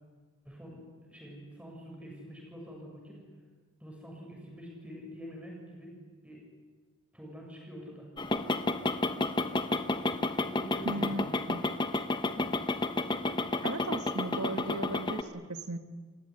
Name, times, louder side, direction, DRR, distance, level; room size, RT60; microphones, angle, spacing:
voice 1, 0.4-3.2 3.8-5.9 6.2-6.4 7.1-8.1 10.5-11.3, equal, 5° right, -1 dB, 7.3 m, -46 dB
sound 1, 8.2-15.2, left 2 dB, 20° left, 1.0 m, -31 dB
voice 2, 10.8-11.6 13.6-15.8, right 2 dB, 80° right, 8 dB, 1.7 m, -36 dB
29.0 x 16.5 x 10.0 m, 1.5 s
head